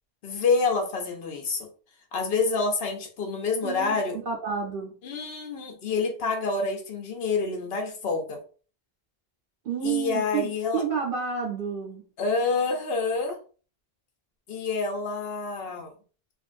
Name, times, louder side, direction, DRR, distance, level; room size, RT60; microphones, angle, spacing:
voice 1, 0.2-1.7 2.1-4.2 5.0-8.4 9.8-10.8 12.2-13.4 14.5-15.9, left 4 dB, 75° left, 2 dB, 1.0 m, -27 dB
voice 2, 3.6-5.0 9.6-10.5 10.7-12.0, right 6 dB, 60° right, -2 dB, 0.9 m, -30 dB
3.5 x 2.5 x 2.5 m, 0.38 s
omnidirectional pair, 1.0 m